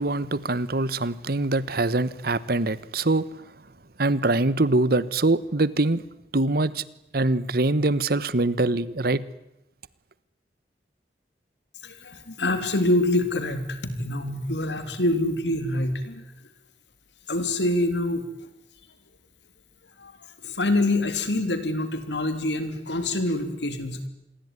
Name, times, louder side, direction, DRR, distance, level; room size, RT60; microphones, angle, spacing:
voice 1, 0.0-3.2 4.0-6.0 6.3-6.8 7.1-9.2, right 2 dB, 60° right, 1.2 m, -23 dB
voice 2, 11.8-16.2 17.3-18.3 20.0-20.1 20.4-24.1, left 1 dB, 80° left, 3.5 m, -25 dB
27.0 x 22.0 x 9.8 m
head